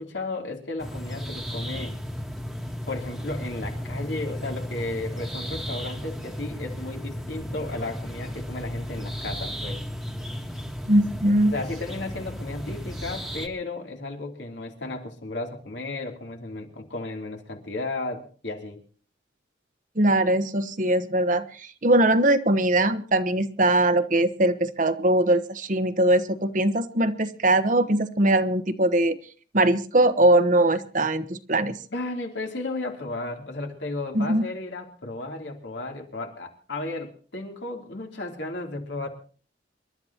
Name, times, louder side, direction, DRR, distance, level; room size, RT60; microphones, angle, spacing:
voice 1, 0.0-1.9 2.9-9.8 11.4-18.8 31.9-39.1, left 2 dB, 75° left, 2 dB, 3.3 m, -34 dB
sound 1, 0.8-13.5, equal, ahead, 1.5 m, -34 dB
voice 2, 10.9-11.5 20.0-21.5 21.8-29.2 29.5-31.8 34.1-34.5, right 1 dB, 45° right, 11 dB, 1.1 m, -21 dB
28.0 x 12.5 x 2.9 m, 0.42 s
head